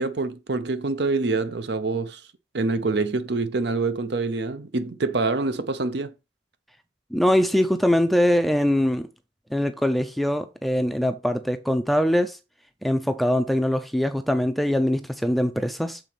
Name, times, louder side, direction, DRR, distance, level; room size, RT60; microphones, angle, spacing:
voice 1, 0.0-2.2 2.5-6.1, right 3 dB, 55° right, 0.7 m, -26 dB
voice 2, 7.1-9.1 9.5-12.4 12.8-16.0, equal, ahead, 0.5 m, -22 dB
6.7 x 4.1 x 5.8 m
head